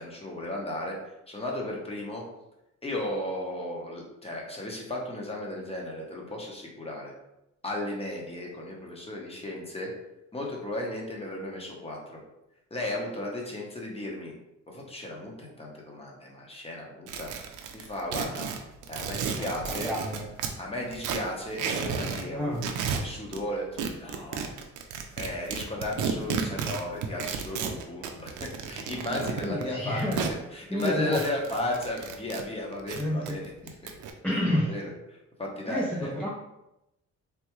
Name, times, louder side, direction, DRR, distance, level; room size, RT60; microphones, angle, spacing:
voice 1, 0.0-2.2 2.8-7.1 7.6-9.9 10.3-12.2 12.7-14.3 14.7-17.3 17.7-18.5 18.9-19.9 20.6-22.7 23.0-24.5 25.2-30.2 30.5-33.4 33.8-33.9 34.5-36.2, left 1 dB, 20° left, -1 dB, 0.9 m, -35 dB
sound 1, 17.1-20.6 20.9-22.3 22.5-23.4 23.8-30.4 30.8-32.4 32.7-34.1, right 6 dB, 85° right, 0.5 m, -33 dB
voice 2, 19.8-20.3 22.3-22.6 29.4-30.3 30.7-31.2 33.0-33.4 34.2-34.7 35.7-36.3, left 1 dB, 5° left, -5 dB, 0.4 m, -29 dB
3.4 x 2.3 x 3.0 m, 0.89 s
cardioid pair, 90°, 30 cm